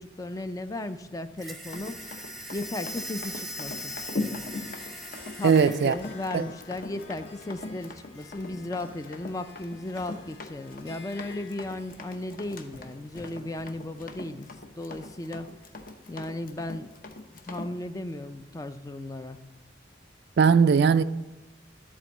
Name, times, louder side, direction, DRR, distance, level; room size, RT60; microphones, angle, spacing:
voice 1, 0.0-1.9 2.5-3.9 5.4-15.5 16.1-16.9 17.4-19.4, left 2 dB, 20° left, 0.4 m, -35 dB
sound 1, 1.4-6.0, equal, ahead, 0.8 m, -40 dB
Run, 1.6-17.7, left 2 dB, 50° left, 0.8 m, -40 dB
Harp, 2.8-14.0, left 5 dB, 90° left, 3.3 m, -51 dB
voice 2, 5.4-5.9 6.3-6.4 20.4-21.0, right 6 dB, 60° right, 0.3 m, -19 dB
11.0 x 4.4 x 7.2 m
head